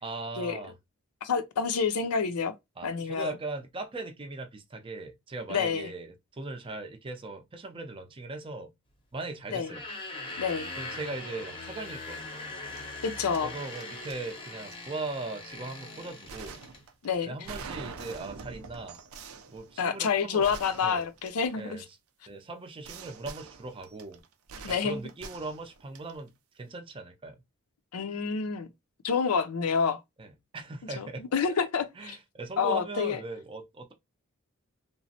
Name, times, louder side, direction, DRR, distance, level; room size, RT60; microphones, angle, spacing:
voice 1, 0.0-0.7 2.8-8.7 9.1-9.8 10.8-12.6 13.4-16.6 17.2-19.0 19.5-20.6 20.8-21.0 21.5-21.8 22.3-24.2 24.6-27.4 30.2-31.5 31.7-33.9, right 3 dB, 25° right, 0.5 m, -39 dB
voice 2, 1.2-2.5 2.8-3.3 5.5-5.9 9.5-9.7 10.4-10.7 13.0-13.5 17.0-17.3 19.8-21.8 24.6-25.0 27.9-28.7 29.0-30.0 31.0-32.2 32.6-33.2, left 6 dB, 85° left, 0.5 m, -28 dB
sound 1, 9.6-16.8, left 2 dB, 25° left, 0.7 m, -41 dB
sound 2, 10.0-10.3 10.6-11.0 12.7-12.8 13.3-14.2 14.7-14.8 16.3-21.9 22.8-26.3, right 4 dB, 75° right, 0.5 m, -45 dB
3.0 x 2.0 x 2.7 m
head